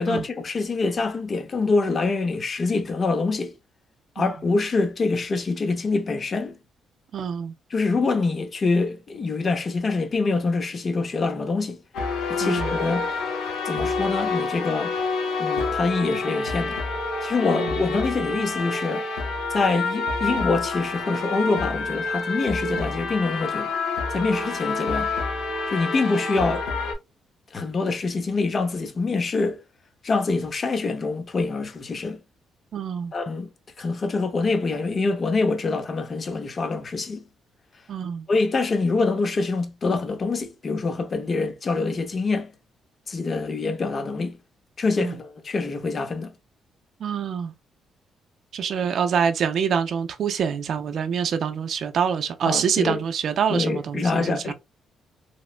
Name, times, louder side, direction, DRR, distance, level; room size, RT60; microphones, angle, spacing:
voice 1, 0.0-3.5 4.2-6.6 7.7-11.8 12.3-13.1 13.6-14.9 15.4-16.8 17.2-19.1 19.5-23.7 24.1-25.1 25.7-26.6 27.5-29.6 30.0-32.2 33.1-33.5 33.8-37.2 38.3-42.5 43.1-44.4 44.8-46.3 52.4-53.0 53.5-54.5, left 3 dB, 40° left, 0.6 m, -25 dB
voice 2, 7.1-7.5 12.4-12.7 17.5-17.7 32.7-33.1 37.9-38.3 45.0-45.1 47.0-47.5 48.5-54.5, right 7 dB, 60° right, 0.3 m, -25 dB
sound 1, 11.9-26.9, left 3 dB, 80° left, 0.7 m, -28 dB
2.9 x 2.0 x 2.4 m
cardioid pair, 90°, 0 cm